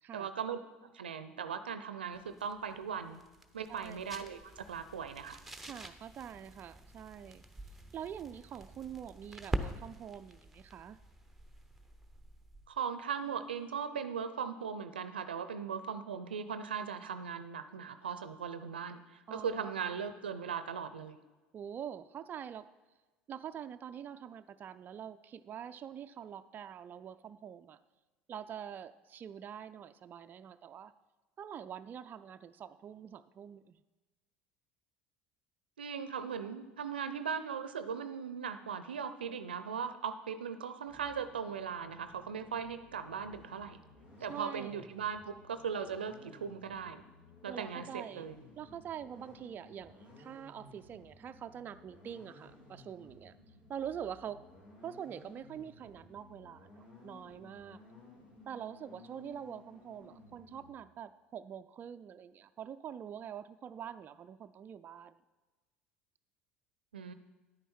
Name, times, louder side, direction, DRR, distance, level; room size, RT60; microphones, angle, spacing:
voice 1, 0.1-0.6 0.9-3.2 3.5-5.4 12.7-19.0 19.3-21.2 35.8-43.8 44.2-47.0 47.4-48.4 66.9-67.1, right 7 dB, 85° right, 11 dB, 0.6 m, -38 dB
sound 1, 2.1-12.8, right 1 dB, 5° right, 0.9 m, -45 dB
voice 2, 3.7-4.0 5.6-7.4 7.9-11.0 19.3-19.7 21.5-22.7 23.3-27.8 28.3-30.9 31.4-33.8 44.3-44.9 47.5-48.3 48.6-53.3 53.7-54.4 54.8-57.8 58.5-65.2, right 9 dB, 35° right, 10 dB, 0.4 m, -45 dB
sound 2, 40.8-60.7, left 2 dB, 85° left, 3.1 m, -57 dB
10.5 x 8.9 x 4.4 m, 1.2 s
hypercardioid pair, 70°, 5 cm